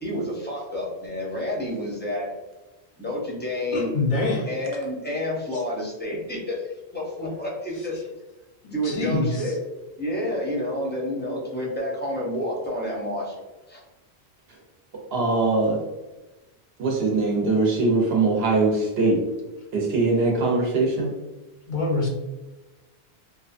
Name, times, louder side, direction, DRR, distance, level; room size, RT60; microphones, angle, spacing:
voice 1, 0.0-2.3 3.0-3.9 4.5-8.0 8.7-9.6 10.0-13.4 13.7-13.8, left 1 dB, 15° left, -4 dB, 0.4 m, -29 dB
voice 2, 3.7-4.5 8.6-9.4 21.7-22.1, left 2 dB, 55° left, 0 dB, 0.6 m, -25 dB
voice 3, 15.1-15.8 16.8-19.2 19.7-21.1, right 3 dB, 70° right, -1 dB, 0.9 m, -21 dB
2.7 x 2.2 x 2.4 m, 1.1 s
omnidirectional pair, 1.1 m